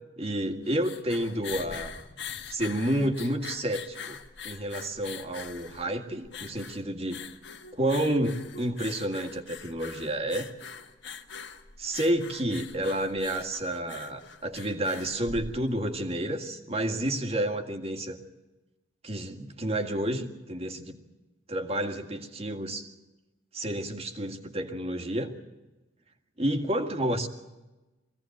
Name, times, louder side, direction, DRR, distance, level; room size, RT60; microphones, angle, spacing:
voice 1, 0.2-2.0 2.5-4.2 4.4-7.2 7.7-10.5 11.8-18.2 19.0-21.0 21.5-22.9 23.5-25.3 26.4-27.3, right 1 dB, 30° right, 5 dB, 1.9 m, -30 dB
sound 1, 0.5-16.0, left 6 dB, 60° left, 1.6 m, -43 dB
22.5 x 16.5 x 9.2 m, 1.1 s
head